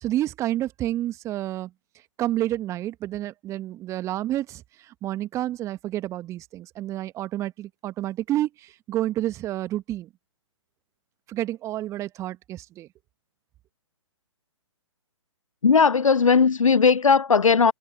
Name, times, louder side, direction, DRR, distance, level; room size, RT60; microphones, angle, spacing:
voice 1, 0.0-1.7 2.2-10.1 11.3-12.9, right 14 dB, 15° right, 1.7 m, -29 dB
voice 2, 15.6-17.7, left 5 dB, 80° left, 0.4 m, -18 dB
figure-of-eight pair, 130°, 17 cm